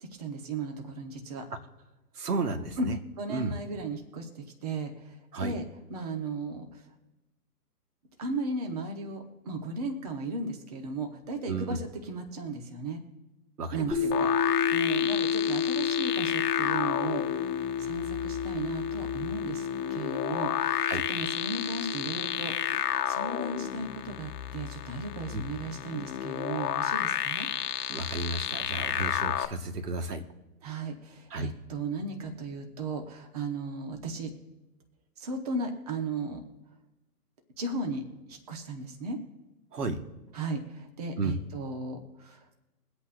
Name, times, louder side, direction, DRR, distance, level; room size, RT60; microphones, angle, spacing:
voice 1, 0.0-1.5 2.8-2.9 3.2-5.6 5.9-6.8 8.2-13.0 13.7-17.4 17.8-27.5 30.6-34.3 35.2-36.4 37.6-39.2 40.3-42.6, right 3 dB, 25° right, 4 dB, 0.9 m, -36 dB
voice 2, 2.2-3.0 3.3-3.5 5.3-5.5 11.5-11.8 13.6-14.0 20.8-21.0 25.3-25.4 27.9-30.2 31.3-31.5 39.7-40.0 41.2-41.4, right 3 dB, 75° right, 6 dB, 1.6 m, -32 dB
sound 1, 13.9-22.7, left 7 dB, ahead, 1.0 m, -31 dB
sound 2, 14.1-29.5, left 10 dB, 75° left, 0.9 m, -32 dB
22.5 x 8.3 x 2.6 m, 1.0 s
hypercardioid pair, 170°, 47 cm